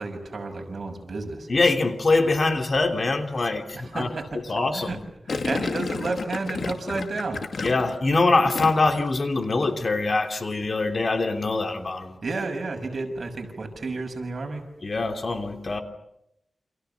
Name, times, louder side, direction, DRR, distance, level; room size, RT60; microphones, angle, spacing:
voice 1, 0.0-1.5 3.7-5.0 5.3-7.4 12.2-14.7, right 3 dB, 55° right, 6.6 m, -31 dB
voice 2, 1.5-4.1 4.5-5.0 7.6-12.2 14.8-15.8, left 3 dB, 45° left, 3.1 m, -23 dB
Gurgling, 5.3-9.1 9.3-9.7, left 4 dB, 70° left, 2.4 m, -31 dB
29.5 x 28.0 x 7.1 m
wide cardioid pair, 115°, 0 cm